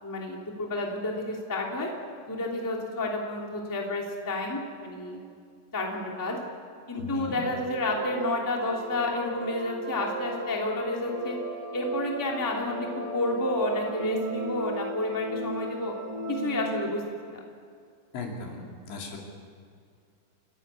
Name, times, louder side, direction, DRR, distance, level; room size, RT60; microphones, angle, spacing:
voice 1, 0.0-1.9 2.3-5.2 5.7-6.4 6.9-11.4 11.7-15.9 16.3-17.4, left 1 dB, 5° left, -1 dB, 1.8 m, -30 dB
voice 2, 6.9-7.5 18.1-19.2, left 4 dB, 80° left, -1 dB, 5.3 m, -37 dB
sound 1, 7.4-16.9, right 1 dB, 35° right, 1.8 m, -37 dB
30.0 x 11.5 x 8.4 m, 2.2 s
omnidirectional pair, 5.2 m